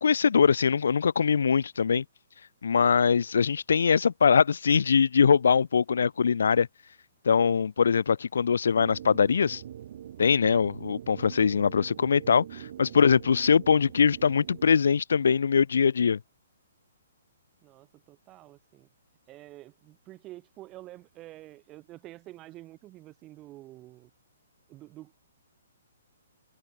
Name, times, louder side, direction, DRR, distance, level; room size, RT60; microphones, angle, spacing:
voice 1, 0.0-2.0 2.6-6.7 7.3-9.6 10.2-16.2, left 6 dB, 80° left, 0.5 m, -22 dB
sound 1, 8.7-14.7, right 10 dB, 45° right, 3.3 m, -43 dB
voice 2, 17.6-18.9 19.3-24.1 24.7-25.1, right 17 dB, 20° right, 3.6 m, -48 dB
hypercardioid pair, 165°, 0 cm